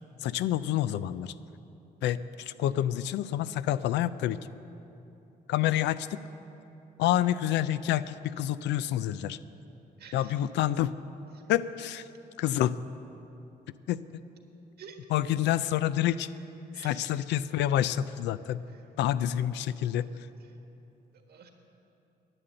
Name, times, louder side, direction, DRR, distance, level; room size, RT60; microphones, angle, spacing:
voice 1, 0.2-1.3 2.0-4.4 5.5-6.2 7.0-9.4 10.1-10.9 11.5-12.1 12.4-12.8 13.9-14.0 15.1-16.3 16.8-18.6 19.0-20.1, left 12 dB, 90° left, 15 dB, 0.4 m, -28 dB
voice 2, 10.0-10.3 11.3-11.4 14.8-15.0 16.7-17.2 18.7-18.8 19.2-19.3 21.1-21.5, right 7 dB, 65° right, 4 dB, 1.5 m, -50 dB
11.0 x 9.1 x 7.7 m, 3.0 s
cardioid pair, 90°, 18 cm